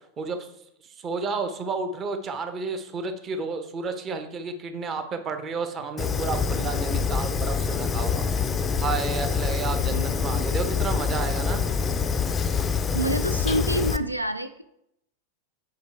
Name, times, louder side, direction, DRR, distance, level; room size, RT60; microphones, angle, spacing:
voice 1, 0.2-0.5 0.8-8.4 8.8-11.6, right 4 dB, 25° right, 7 dB, 0.8 m, -31 dB
Fire, 6.0-14.0, left 6 dB, 20° left, 0.4 m, -26 dB
voice 2, 12.9-14.6, equal, 90° right, 10 dB, 0.3 m, -27 dB
5.8 x 4.9 x 4.4 m, 0.76 s
figure-of-eight pair, 90°, 0 cm